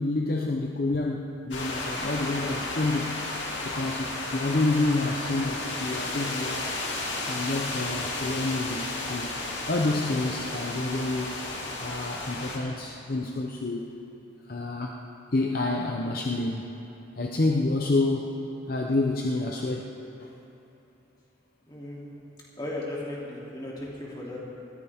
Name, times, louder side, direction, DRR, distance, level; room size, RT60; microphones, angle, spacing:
voice 1, 0.0-6.7 7.3-9.3 9.7-11.4 11.8-13.9 14.5-15.0 15.3-16.7 17.2-18.3 18.7-20.3, left 2 dB, 50° left, 0 dB, 0.7 m, -28 dB
sound 1, 1.5-12.6, left 2 dB, 75° left, 2.1 m, -33 dB
voice 2, 21.6-22.3 22.6-24.4, left 1 dB, 20° left, -6 dB, 3.0 m, -36 dB
20.0 x 14.5 x 3.6 m, 2.9 s
head